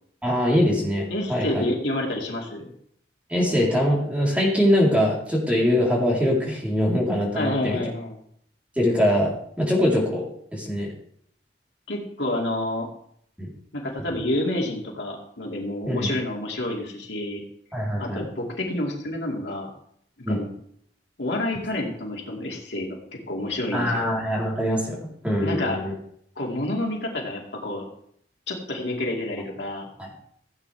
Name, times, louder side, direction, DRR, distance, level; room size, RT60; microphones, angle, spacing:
voice 1, 0.2-1.6 3.3-7.8 8.8-10.3 10.5-10.9 13.4-13.5 15.8-16.1 17.7-18.2 20.3-20.4 23.7-25.9 30.0-30.1, equal, 10° right, -4 dB, 3.8 m, -23 dB
voice 2, 1.1-2.7 7.3-8.2 11.9-12.9 13.7-17.4 18.0-19.7 20.3-20.5 21.2-23.0 23.3-24.1 25.4-25.8 26.4-27.9 28.5-29.9, left 1 dB, 80° left, -1 dB, 2.4 m, -29 dB
16.5 x 8.6 x 3.5 m, 0.68 s
head